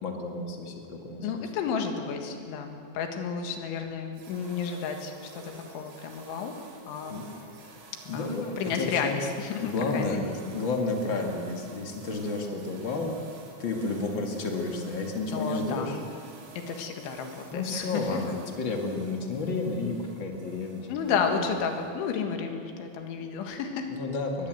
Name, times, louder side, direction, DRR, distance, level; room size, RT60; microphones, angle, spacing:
voice 1, 0.0-1.3 7.1-7.3 7.6-9.2 9.6-13.1 13.6-16.0 17.5-20.9 21.1-21.5 23.9-24.5, left 3 dB, 55° left, 2 dB, 1.3 m, -31 dB
voice 2, 1.2-6.6 6.9-7.2 8.1-10.4 15.3-16.0 16.7-18.2 20.9-23.9, left 6 dB, 75° left, 5 dB, 4.0 m, -32 dB
sound 1, 4.1-22.1, right 3 dB, 85° right, 5.6 m, -50 dB
22.0 x 20.0 x 7.9 m, 2.3 s
omnidirectional pair, 5.7 m